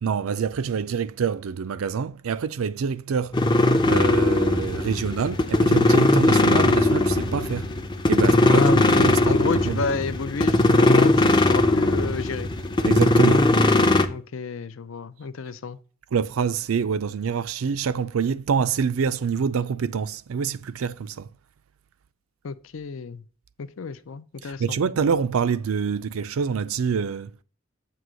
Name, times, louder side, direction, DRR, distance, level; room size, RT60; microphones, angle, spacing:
voice 1, 0.0-3.3 3.9-7.7 8.1-9.9 12.8-13.5 16.1-21.3 24.4-27.3, right 6 dB, 90° right, 0.4 m, -26 dB
sound 1, 3.3-14.1, left 2 dB, 20° left, 0.5 m, -19 dB
voice 2, 8.5-12.5 14.1-15.8 22.4-23.2 23.6-24.8, left 4 dB, 75° left, 0.5 m, -31 dB
7.7 x 3.0 x 6.1 m
head